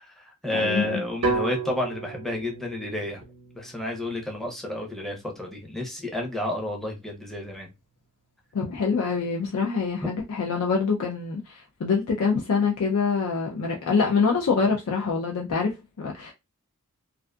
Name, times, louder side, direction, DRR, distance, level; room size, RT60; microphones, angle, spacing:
voice 1, 0.0-3.2 3.6-7.7, left 1 dB, ahead, 0.5 m, -31 dB
voice 2, 0.5-1.0 8.5-16.3, left 5 dB, 80° left, 0.5 m, -25 dB
sound 1, 1.2-5.3, right 4 dB, 85° right, 0.7 m, -33 dB
2.5 x 2.4 x 2.2 m
head